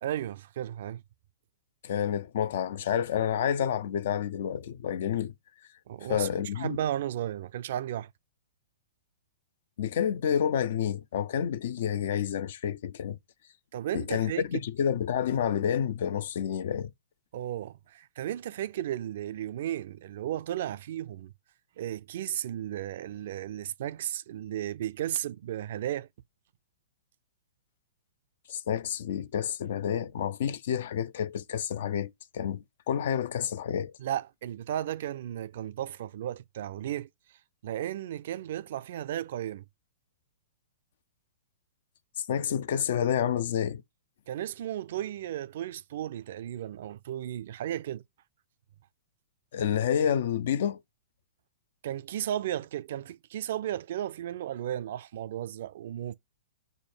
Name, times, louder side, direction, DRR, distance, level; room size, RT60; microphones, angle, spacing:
voice 1, 0.0-1.0 5.9-6.3 6.6-8.1 13.7-14.4 17.3-21.3 21.8-26.1 34.0-37.1 37.6-39.6 44.3-48.0 51.8-56.2, right 11 dB, 55° right, 0.4 m, -34 dB
voice 2, 1.8-5.3 6.0-6.8 9.8-13.2 13.9-16.9 28.5-33.9 42.2-43.8 49.5-50.8, left 9 dB, 55° left, 0.4 m, -29 dB
5.1 x 2.2 x 4.7 m
figure-of-eight pair, 110°, 0 cm